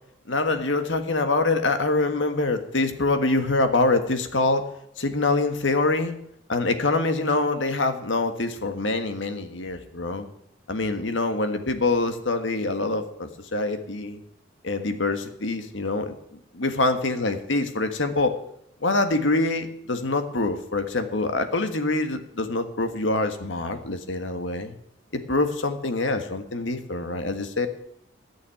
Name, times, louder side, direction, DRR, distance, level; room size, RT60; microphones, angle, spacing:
voice 1, 0.3-4.6 5.0-6.2 6.5-10.3 10.7-14.2 14.6-16.2 16.5-18.4 18.8-24.7 25.1-27.7, left 2 dB, 85° left, 7 dB, 1.6 m, -25 dB
14.5 x 6.4 x 9.9 m, 0.75 s
head